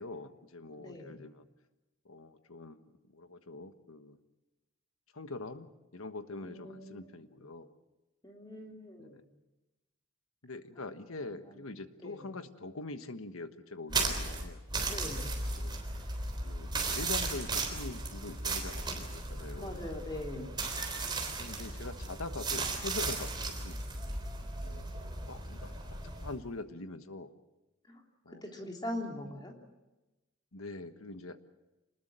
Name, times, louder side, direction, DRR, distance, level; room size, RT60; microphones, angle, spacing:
voice 1, 0.0-1.4 2.0-4.2 5.1-7.7 9.0-9.2 10.4-14.6 15.6-15.8 16.4-19.9 21.4-23.8 24.6-24.9 25.2-27.3 28.2-28.5 30.5-31.4, left 2 dB, 90° left, 10 dB, 1.4 m, -44 dB
voice 2, 0.8-1.2 6.4-6.9 8.2-9.2 12.0-12.2 14.9-15.3 19.6-20.5 27.9-28.0 28.4-29.5, left 1 dB, 20° left, 1 dB, 3.4 m, -41 dB
sound 1, 13.9-26.3, right 3 dB, 20° right, 3.6 m, -36 dB
26.0 x 20.0 x 7.6 m, 1.0 s
head